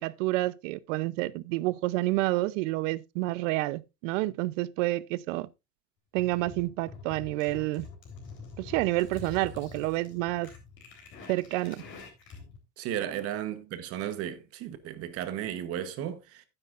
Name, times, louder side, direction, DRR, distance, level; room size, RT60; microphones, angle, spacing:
voice 1, 0.0-5.5 6.1-7.9 8.6-10.5 11.3-11.8, right 19 dB, 90° right, 0.8 m, -29 dB
sound 1, 6.1-12.6, left 5 dB, 30° left, 3.7 m, -46 dB
voice 2, 12.8-16.4, right 10 dB, 40° right, 1.1 m, -34 dB
12.0 x 9.9 x 2.5 m
cardioid pair, 175°, 37 cm